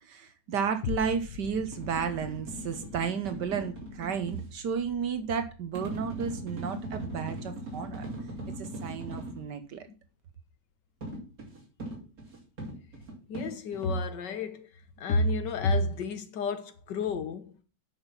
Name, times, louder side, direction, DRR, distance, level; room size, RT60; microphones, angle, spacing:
voice 1, 0.0-8.1 8.6-9.8, right 6 dB, 75° right, 1.6 m, -32 dB
sound 1, 0.8-9.4 9.9-10.0, left 11 dB, 70° left, 1.3 m, -44 dB
sound 2, 1.6-4.5 5.7-9.5 11.0-14.0, right 1 dB, 55° right, 3.3 m, -40 dB
voice 2, 13.3-14.7 15.0-17.5, left 2 dB, 85° left, 1.8 m, -30 dB
9.3 x 6.3 x 5.7 m
omnidirectional pair, 1.9 m